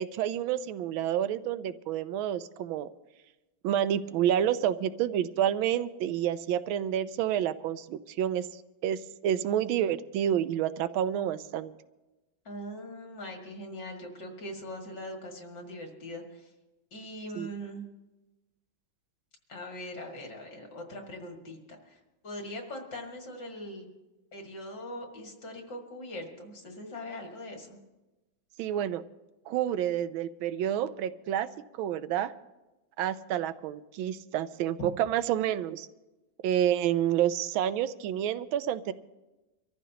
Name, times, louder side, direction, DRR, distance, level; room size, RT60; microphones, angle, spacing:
voice 1, 0.0-2.9 3.6-11.7 17.3-17.5 28.6-29.0 29.5-31.5 31.8-32.3 33.0-35.9 36.4-38.9, right 10 dB, 90° right, 13 dB, 1.4 m, -29 dB
voice 2, 12.4-16.5 16.9-17.8 19.5-23.9 24.3-27.8, left 1 dB, 60° left, 2 dB, 2.7 m, -41 dB
24.5 x 14.0 x 2.8 m, 1.1 s
omnidirectional pair, 2.1 m